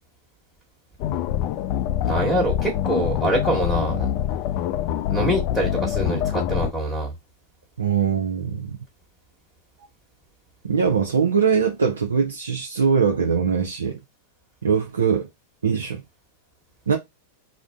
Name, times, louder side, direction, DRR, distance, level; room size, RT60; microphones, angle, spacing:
sound 1, 1.0-6.7, left 11 dB, 50° left, 0.3 m, -25 dB
voice 1, 2.0-4.1 5.1-7.1, right 1 dB, 10° right, 1.2 m, -24 dB
voice 2, 7.8-8.8 10.6-14.0 14.6-15.3 15.6-16.0 16.9-17.0, right 6 dB, 85° right, 0.5 m, -22 dB
2.5 x 2.1 x 3.4 m
hypercardioid pair, 100°, 0 cm